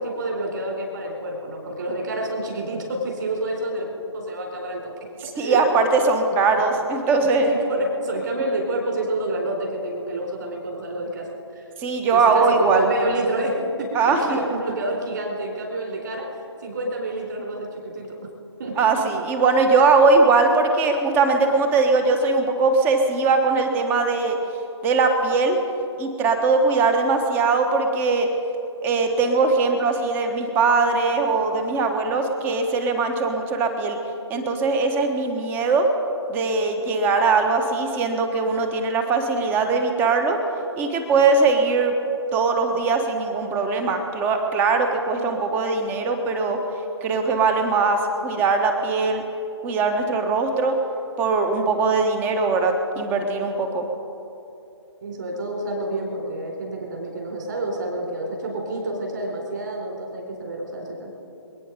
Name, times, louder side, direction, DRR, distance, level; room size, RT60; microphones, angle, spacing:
voice 1, 0.0-3.9 4.1-4.9 5.3-6.0 6.5-6.6 7.4-11.3 11.5-11.7 12.1-18.3 18.6-18.7 55.0-61.1, right 1 dB, 45° right, 0 dB, 4.4 m, -28 dB
voice 2, 5.4-7.5 11.8-12.9 13.9-14.2 18.8-24.4 24.8-25.6 26.0-28.3 28.8-34.0 34.3-35.9 36.3-40.4 40.8-41.9 42.3-46.6 47.0-49.2 49.6-50.7 51.2-53.8, right 4 dB, 15° right, 5 dB, 1.2 m, -20 dB
26.5 x 9.6 x 5.2 m, 2.8 s
figure-of-eight pair, 140°, 15 cm